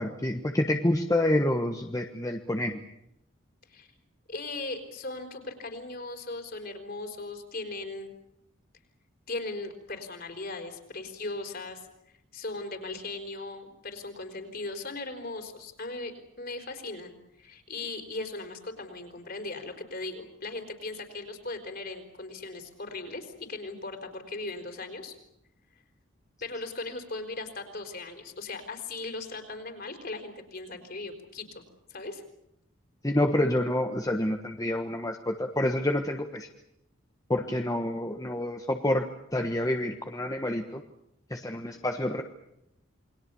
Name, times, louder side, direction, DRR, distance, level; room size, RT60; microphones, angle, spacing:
voice 1, 0.0-2.8 33.0-36.5 37.3-39.1 39.3-40.8 41.3-42.2, left 1 dB, 15° left, 4 dB, 1.2 m, -28 dB
voice 2, 4.3-8.1 9.3-11.9 12.3-25.2 26.4-31.6 31.9-32.2, left 2 dB, 50° left, 5 dB, 4.5 m, -38 dB
28.5 x 21.5 x 7.0 m, 0.82 s
head